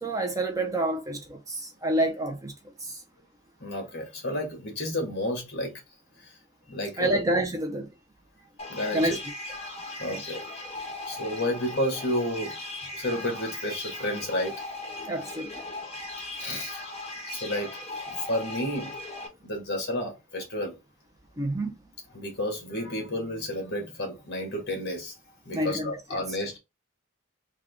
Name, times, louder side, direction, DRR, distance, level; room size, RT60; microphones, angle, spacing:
voice 1, 0.0-2.5 2.8-3.0 7.0-7.9 8.9-9.2 10.1-10.2 15.1-15.6 21.4-21.7 25.5-26.2, right 1 dB, 15° right, 0.5 m, -28 dB
voice 2, 3.6-5.7 6.7-7.2 8.7-9.2 10.0-10.4 11.1-12.5 12.9-14.5 16.4-16.8 17.3-17.8 18.1-18.9 19.4-20.8 22.1-25.1 25.4-26.6, left 1 dB, 50° left, 1.4 m, -31 dB
sound 1, 8.6-19.3, left 2 dB, 30° left, 0.8 m, -38 dB
3.6 x 2.3 x 3.4 m
head